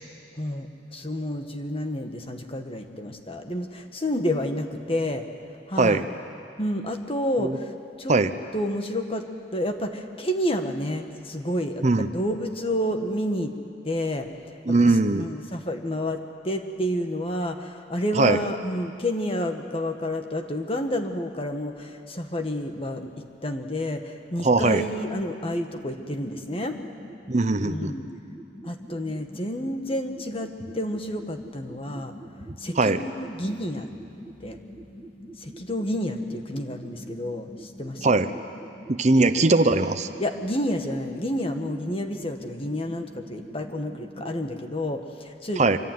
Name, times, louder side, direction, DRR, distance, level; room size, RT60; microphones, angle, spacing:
voice 1, 0.4-5.3 5.7-6.0 6.6-7.7 8.0-8.2 8.5-13.5 13.8-14.3 14.8-26.8 27.6-28.1 28.6-32.1 32.6-33.9 34.4-34.6 35.4-38.2 40.2-45.7, left 1 dB, 30° left, 5 dB, 1.7 m, -30 dB
voice 2, 14.7-15.3 18.1-18.4 24.4-24.8 27.3-27.9 32.8-33.0 38.0-38.3 38.9-40.1 45.6-45.8, right 3 dB, 40° right, 10 dB, 0.8 m, -20 dB
sound 1, 24.6-44.6, equal, ahead, 2.1 m, -44 dB
25.5 x 24.0 x 9.4 m, 2.4 s
head